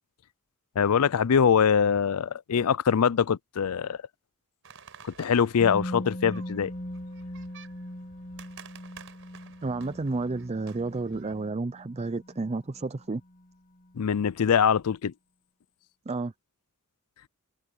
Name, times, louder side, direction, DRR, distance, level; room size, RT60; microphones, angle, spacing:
voice 1, 0.8-4.0 5.0-6.7 13.9-15.1, left 7 dB, 80° left, 0.5 m, -23 dB
sound 1, 4.6-11.5, right 6 dB, 60° right, 5.5 m, -52 dB
Musical instrument, 5.6-13.5 13.8-13.9, equal, 40° left, 1.8 m, -40 dB
voice 2, 9.6-13.2 16.1-16.3, right 3 dB, 30° right, 0.5 m, -31 dB
head